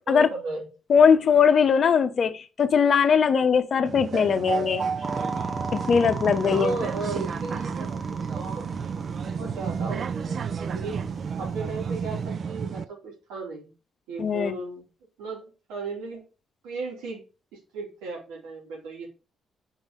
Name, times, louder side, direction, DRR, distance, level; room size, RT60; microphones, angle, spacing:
voice 1, 0.1-0.7 6.5-8.6 9.1-10.9 11.4-13.7 14.1-14.8 15.2-15.4 15.7-16.2 16.6-17.2 17.7-19.1, right 3 dB, 90° right, 3.0 m, -35 dB
voice 2, 0.9-4.9 5.7-6.7 14.2-14.6, left 6 dB, 55° left, 0.8 m, -20 dB
sound 1, 3.9-12.8, right 6 dB, 55° right, 0.4 m, -31 dB
sound 2, 5.0-12.3, right 3 dB, 35° right, 1.1 m, -36 dB
5.4 x 4.6 x 5.1 m
supercardioid pair, 55°, 0 cm